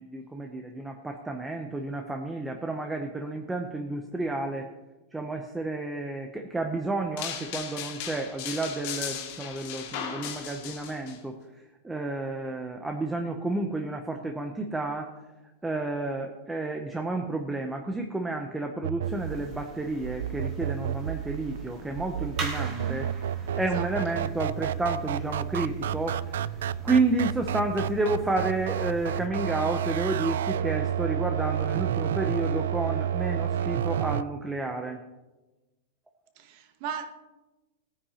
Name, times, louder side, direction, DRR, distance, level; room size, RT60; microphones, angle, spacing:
voice 1, 0.0-4.7 5.1-15.1 15.6-23.1 23.5-26.5 26.8-35.0, right 2 dB, 5° right, 0.7 m, -31 dB
sound 1, 7.2-11.2, left 8 dB, 45° left, 2.1 m, -37 dB
sound 2, 18.8-34.2, right 9 dB, 75° right, 0.3 m, -30 dB
sound 3, 19.0-29.3, right 2 dB, 25° right, 2.5 m, -43 dB
voice 2, 22.6-23.1 23.6-24.2 36.4-37.1, right 7 dB, 40° right, 1.1 m, -38 dB
20.5 x 9.6 x 2.9 m
supercardioid pair, 170°, 0 cm